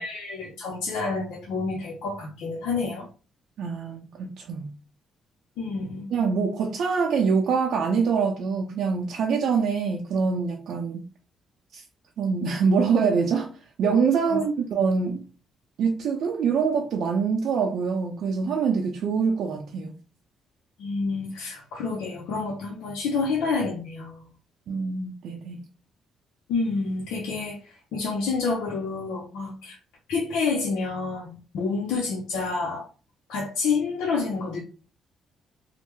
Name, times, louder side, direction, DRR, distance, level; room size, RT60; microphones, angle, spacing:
voice 1, 0.0-3.1 5.6-6.0 14.2-14.4 20.8-24.3 26.5-29.8 30.1-32.9 33.3-34.6, left 4 dB, 90° left, 0.6 m, -28 dB
voice 2, 3.6-4.7 6.1-11.0 11.7-11.8 12.2-13.5 13.8-15.2 15.8-20.0 24.7-25.7, right 5 dB, 70° right, 0.5 m, -24 dB
3.3 x 2.0 x 3.0 m
cardioid pair, 90°, 0 cm